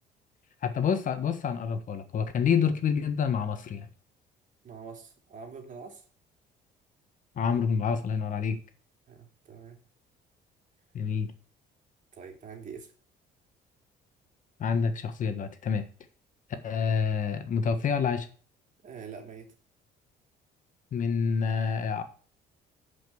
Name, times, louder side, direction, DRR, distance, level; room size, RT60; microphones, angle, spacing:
voice 1, 0.6-3.9 7.4-8.6 10.9-11.3 14.6-15.9 16.6-18.3 20.9-22.0, left 6 dB, 50° left, 9 dB, 1.4 m, -27 dB
voice 2, 4.6-6.0 9.1-9.8 12.1-12.9 18.8-19.5, right 6 dB, 50° right, 3 dB, 2.9 m, -45 dB
10.5 x 5.4 x 7.0 m, 0.42 s
cardioid pair, 110°, 17 cm